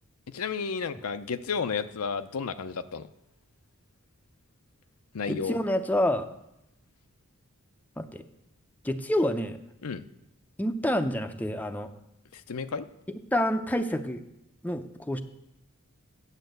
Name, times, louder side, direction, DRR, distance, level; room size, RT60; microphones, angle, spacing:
voice 1, 0.3-3.1 5.1-5.6 9.8-10.0 12.3-12.9, left 5 dB, 75° left, 10 dB, 0.6 m, -32 dB
voice 2, 5.3-6.3 8.0-8.2 8.8-9.6 10.6-11.9 13.3-14.2 14.6-15.2, left 1 dB, 5° left, 7 dB, 0.5 m, -28 dB
9.1 x 7.3 x 7.9 m, 0.86 s
head